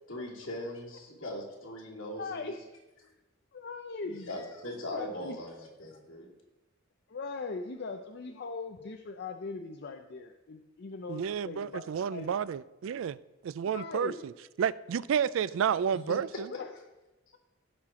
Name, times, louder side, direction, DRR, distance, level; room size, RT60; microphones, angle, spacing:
voice 1, 0.1-2.5 4.3-6.3 15.9-16.1, left 1 dB, 75° left, 2.6 m, -40 dB
voice 2, 2.2-2.6 3.5-4.3 4.9-5.4 7.1-12.3 13.6-14.2 15.6-15.8 16.5-16.8, left 4 dB, 55° left, 0.5 m, -40 dB
voice 3, 11.1-13.2 13.4-14.3 14.6-16.5, right 8 dB, 70° right, 0.3 m, -30 dB
15.5 x 5.8 x 3.7 m
head